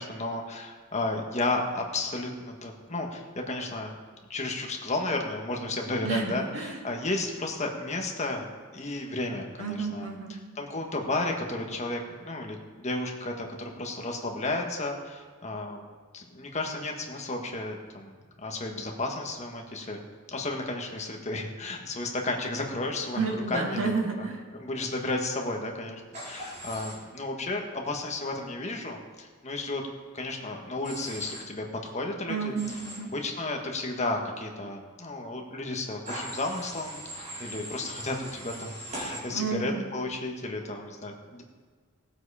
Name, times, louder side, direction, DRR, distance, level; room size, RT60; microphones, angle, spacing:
voice 1, 0.0-3.9 4.3-8.5 8.7-15.8 16.1-20.0 20.3-23.9 24.5-29.8 30.1-32.5 33.1-41.4, left 2 dB, 35° left, 2 dB, 1.5 m, -33 dB
voice 2, 6.0-6.8 9.6-10.4 23.1-24.4 32.3-33.1 39.3-39.8, right 4 dB, 70° right, 1 dB, 2.0 m, -31 dB
Human voice / Train, 26.1-26.9 30.8-31.4 32.6-33.0 36.1-39.2, right 1 dB, 35° right, 4.5 m, -40 dB
17.5 x 7.8 x 4.9 m, 1.5 s
head